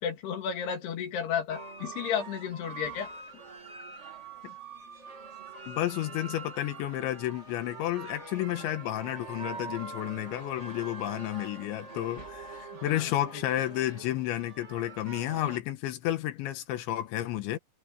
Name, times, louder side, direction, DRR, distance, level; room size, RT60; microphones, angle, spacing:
voice 1, 0.0-3.1 12.7-13.4, left 8 dB, 65° left, 4.2 m, -33 dB
sound 1, 1.5-15.6, right 4 dB, 40° right, 1.0 m, -44 dB
voice 2, 5.7-17.6, left 14 dB, 85° left, 3.6 m, -31 dB
omnidirectional pair, 5.1 m